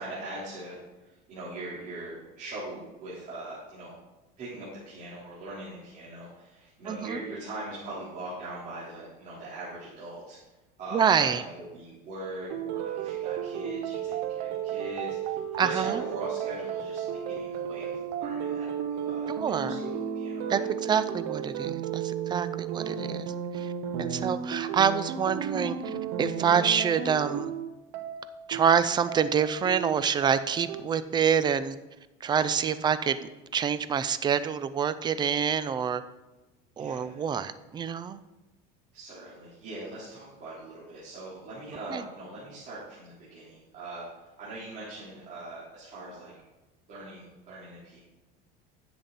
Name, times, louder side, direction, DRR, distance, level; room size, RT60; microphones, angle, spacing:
voice 1, 0.0-3.9 4.4-10.4 10.8-20.6 32.5-32.8 36.8-37.2 38.9-46.3 46.9-48.0, right 2 dB, 40° right, -9 dB, 3.7 m, -41 dB
voice 2, 6.9-7.2 10.9-11.4 15.6-16.0 19.3-19.8 20.5-23.7 24.0-27.5 28.5-31.8 32.2-36.0 36.8-38.2 41.9-42.0, right 7 dB, 20° right, 14 dB, 0.4 m, -27 dB
sound 1, 12.5-30.8, right 8 dB, 70° right, 1.1 m, -33 dB
10.0 x 7.7 x 4.1 m, 1.1 s
supercardioid pair, 135°, 20 cm